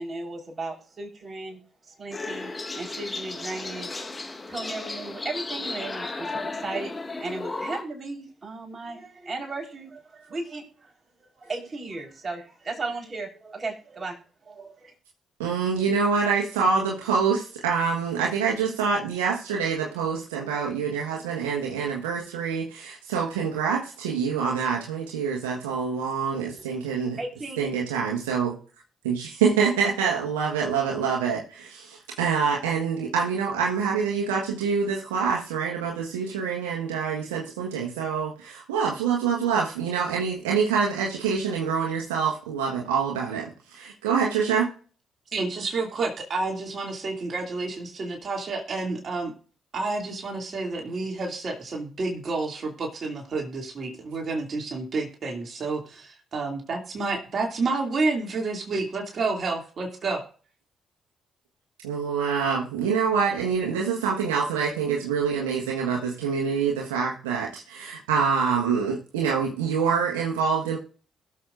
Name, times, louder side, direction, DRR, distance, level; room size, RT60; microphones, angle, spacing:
voice 1, 0.0-1.6 2.0-4.1 4.5-10.9 11.2-14.2 14.4-14.9 27.2-27.6, right 3 dB, 35° right, 0 dB, 4.3 m, -36 dB
sound 1, 2.1-7.8, left 3 dB, 30° left, 1.4 m, -34 dB
voice 2, 15.4-27.2 27.6-28.5 29.0-44.7 61.8-70.8, right 6 dB, 90° right, -2 dB, 1.4 m, -26 dB
voice 3, 45.3-49.3 49.7-55.8 56.3-60.2, right 3 dB, 50° right, 1 dB, 2.7 m, -29 dB
21.5 x 7.2 x 2.6 m, 0.41 s
hypercardioid pair, 45°, 0 cm